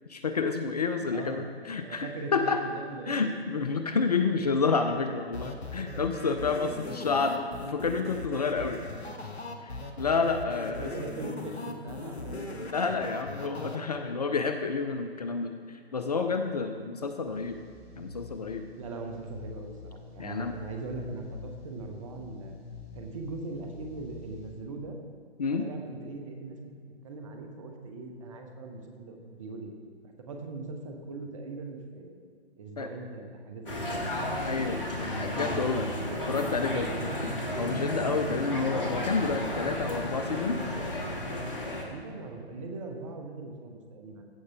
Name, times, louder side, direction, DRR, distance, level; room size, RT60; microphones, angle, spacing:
voice 1, 0.1-2.6 3.1-8.8 9.6-11.1 12.6-17.6 18.0-18.7 20.2-20.5 25.4-25.7 32.8-32.9 34.4-34.8 35.1-35.9 36.3-36.9 37.6-40.6, left 4 dB, 40° left, 7 dB, 0.5 m, -29 dB
voice 2, 1.1-1.4 1.8-3.9 10.4-10.5 10.8-12.9 14.0-14.1 16.5-16.7 18.8-22.5 22.9-25.0 25.5-29.7 30.0-32.2 32.6-34.1 35.1-37.3 41.8-44.3, right 3 dB, 30° right, 4 dB, 1.0 m, -41 dB
sound 1, 5.3-13.8, left 2 dB, 80° left, 1.2 m, -39 dB
sound 2, 17.3-24.5, left 3 dB, ahead, 1.8 m, -47 dB
sound 3, 33.7-41.8, equal, 55° left, 1.6 m, -33 dB
15.5 x 6.6 x 3.4 m, 2.2 s
figure-of-eight pair, 135°, 32 cm